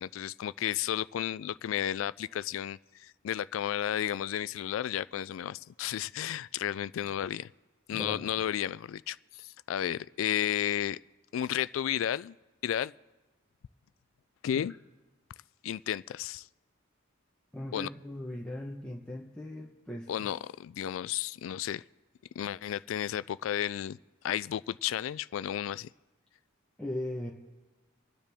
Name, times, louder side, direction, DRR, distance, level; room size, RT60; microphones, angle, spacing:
voice 1, 0.0-7.5 7.9-11.0 11.3-12.3 12.6-12.9 14.4-14.7 15.6-16.5 17.7-17.9 20.1-21.8 22.4-24.0 24.2-25.9, left 10 dB, 70° left, 19 dB, 0.3 m, -33 dB
voice 2, 7.9-8.4 17.5-20.3 26.8-27.3, left 1 dB, 5° left, -3 dB, 1.0 m, -39 dB
25.5 x 9.8 x 3.5 m, 1.2 s
head